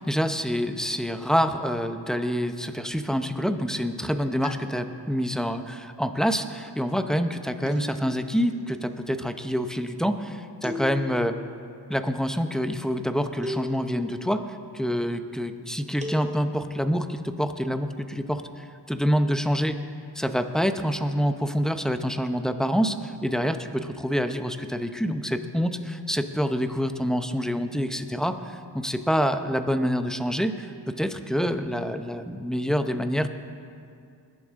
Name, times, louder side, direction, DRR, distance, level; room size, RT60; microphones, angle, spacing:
voice 1, 0.0-11.4 11.9-19.8 20.1-33.3, equal, ahead, 8 dB, 0.7 m, -27 dB
sound 1, 4.4-5.3 7.7-8.5 10.6-11.5 13.4-14.3 16.0-16.9, left 2 dB, 15° right, 1.6 m, -37 dB
21.0 x 10.5 x 3.7 m, 2.4 s
wide cardioid pair, 50°, 42 cm